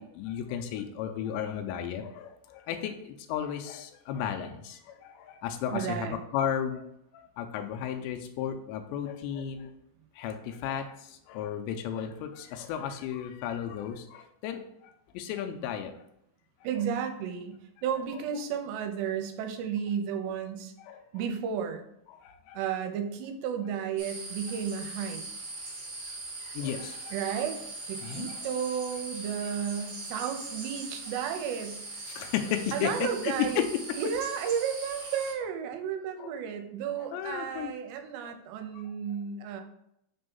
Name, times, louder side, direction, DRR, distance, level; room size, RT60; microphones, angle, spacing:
voice 1, 0.0-6.8 7.1-9.7 10.2-15.9 20.8-21.0 22.1-22.6 26.1-27.1 28.0-28.4 32.1-33.7 36.2-36.3 37.1-37.7 38.2-38.3 38.7-38.8, left 9 dB, 85° left, 6 dB, 2.8 m, -34 dB
voice 2, 5.7-6.2 16.6-17.6 17.8-20.7 21.1-21.8 22.5-25.2 27.1-27.6 27.9-31.8 32.7-33.7 33.9-39.6, right 8 dB, 90° right, 6 dB, 2.8 m, -33 dB
sound 1, 24.0-35.3, right 2 dB, 45° right, 2.4 m, -41 dB
6.2 x 3.4 x 5.3 m, 0.77 s
omnidirectional pair, 4.9 m